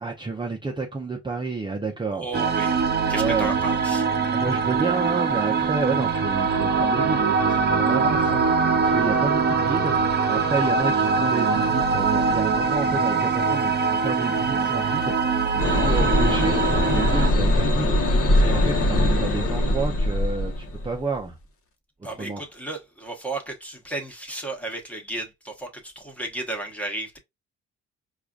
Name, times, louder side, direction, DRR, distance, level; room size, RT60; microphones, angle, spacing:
voice 1, 0.0-2.3 3.1-3.5 4.3-21.4 22.2-22.4, right 4 dB, 15° right, 0.6 m, -30 dB
voice 2, 2.1-2.8 3.1-4.1 22.0-27.2, right 2 dB, 5° left, 1.1 m, -33 dB
sound 1, 2.3-17.3, right 5 dB, 35° right, 0.9 m, -22 dB
sound 2, 15.6-20.9, left 1 dB, 45° left, 1.0 m, -21 dB
4.8 x 2.4 x 2.3 m
cardioid pair, 90°, 30 cm